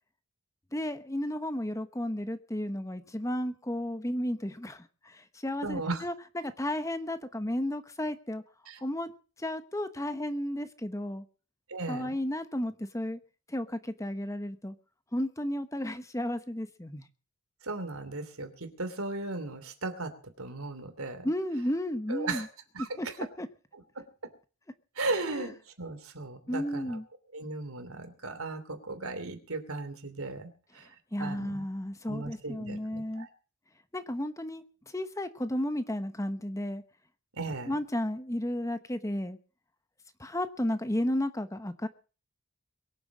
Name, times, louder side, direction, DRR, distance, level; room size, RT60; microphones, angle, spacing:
voice 1, 0.7-8.4 8.8-9.1 9.4-11.2 11.9-13.2 13.5-14.7 15.1-17.1 21.2-22.5 22.8-23.5 25.2-25.5 26.5-27.0 31.1-33.3 33.9-36.8 37.7-39.4 40.2-41.9, left 1 dB, 15° left, 10 dB, 1.0 m, -33 dB
voice 2, 5.6-6.0 8.7-8.8 11.7-12.1 17.6-21.3 22.1-22.5 22.7-23.1 23.7-24.3 25.0-27.0 27.3-30.9 31.2-31.6 32.1-33.3 37.3-37.7, right 3 dB, 80° right, 9 dB, 3.0 m, -36 dB
23.0 x 7.8 x 6.2 m, 0.38 s
head